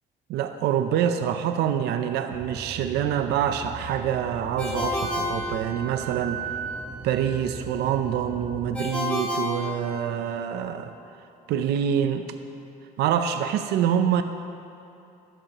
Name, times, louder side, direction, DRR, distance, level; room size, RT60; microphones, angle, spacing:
voice 1, 0.3-6.4 7.0-10.9 11.5-12.3 13.0-14.2, right 9 dB, 80° right, 8 dB, 0.7 m, -26 dB
sound 1, 2.3-8.8, right 3 dB, 40° right, 1.7 m, -40 dB
Ringtone, 4.6-6.2 8.7-10.4, left 2 dB, 5° left, 2.3 m, -30 dB
Wind instrument woodwind instrument, 5.0-8.4, right 7 dB, 55° right, 1.4 m, -38 dB
14.5 x 12.0 x 3.0 m, 2.7 s
cardioid pair, 110°, 17 cm